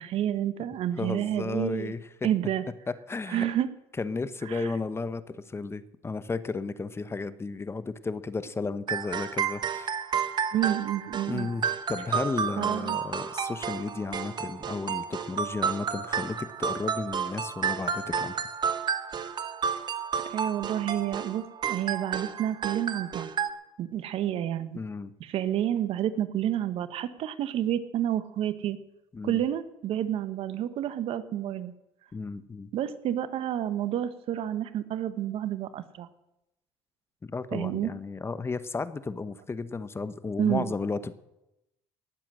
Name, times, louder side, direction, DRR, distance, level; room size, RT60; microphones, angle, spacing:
voice 1, 0.0-1.9 2.2-2.6 3.3-3.7 4.5-4.7 10.5-11.5 12.6-13.0 20.3-23.3 23.8-24.8 25.2-28.8 29.2-31.7 32.7-36.1 37.5-37.9 40.4-40.7, right 11 dB, 60° right, 14 dB, 1.1 m, -29 dB
voice 2, 1.0-2.0 3.1-3.5 4.0-10.0 11.3-18.5 24.7-25.1 29.1-29.4 32.1-32.7 37.2-41.2, left 4 dB, 25° left, 14 dB, 1.0 m, -33 dB
sound 1, 8.9-23.5, right 7 dB, 40° right, 1.3 m, -31 dB
18.5 x 7.6 x 7.6 m, 0.90 s
supercardioid pair, 80°, 11 cm